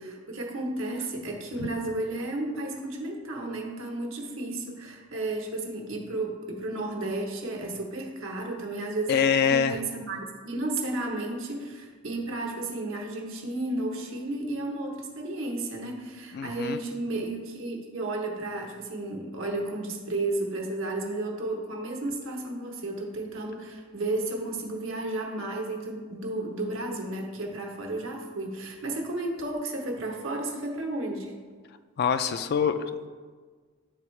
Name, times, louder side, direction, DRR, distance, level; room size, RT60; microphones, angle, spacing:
voice 1, 0.0-31.3, right 2 dB, 80° right, 1 dB, 1.1 m, -33 dB
voice 2, 9.1-9.8 16.3-16.8 32.0-33.1, left 7 dB, 50° left, 10 dB, 0.3 m, -25 dB
10.0 x 3.5 x 3.2 m, 1.5 s
head